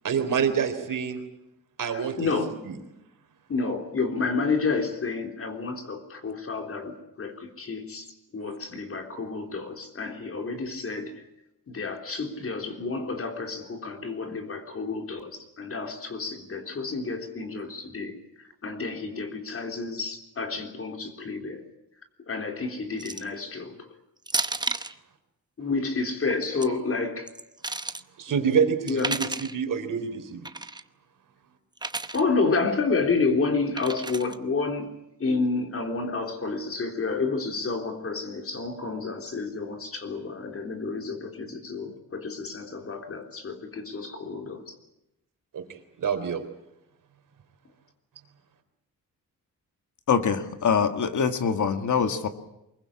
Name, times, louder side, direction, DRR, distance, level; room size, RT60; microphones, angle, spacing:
voice 1, 0.0-1.2 1.8-2.3 2.7-2.8 28.2-29.3 29.5-30.5 45.5-46.4, right 7 dB, 65° right, 7 dB, 3.6 m, -27 dB
voice 2, 1.9-2.6 3.5-11.2 11.7-21.7 22.3-23.9 25.6-27.3 28.4-29.2 32.1-34.9 35.2-44.8, left 4 dB, 40° left, 5 dB, 3.6 m, -30 dB
sound 1, 23.0-23.4 24.3-24.9 26.3-26.7 27.3-28.0 28.9-29.6 30.5-30.8 31.8-32.2 33.8-34.4, right 2 dB, 10° right, 0.9 m, -32 dB
voice 3, 50.1-52.3, left 6 dB, 60° left, 8 dB, 1.9 m, -24 dB
24.0 x 22.0 x 8.6 m, 0.87 s
wide cardioid pair, 150°, 34 cm